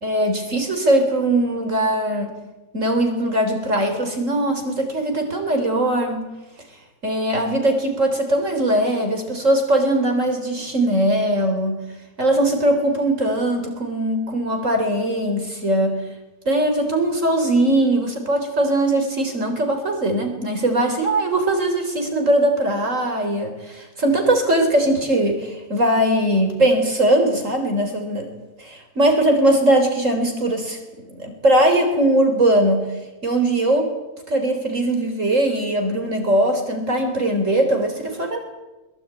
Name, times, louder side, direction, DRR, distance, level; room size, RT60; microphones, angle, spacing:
voice 1, 0.0-2.3 2.7-6.3 7.0-11.8 12.2-16.0 16.5-28.3 28.6-30.8 31.1-32.9 33.2-33.9 34.3-38.4, right 1 dB, 45° right, 5 dB, 4.1 m, -20 dB
22.5 x 21.5 x 9.1 m, 1.1 s
omnidirectional pair, 1.9 m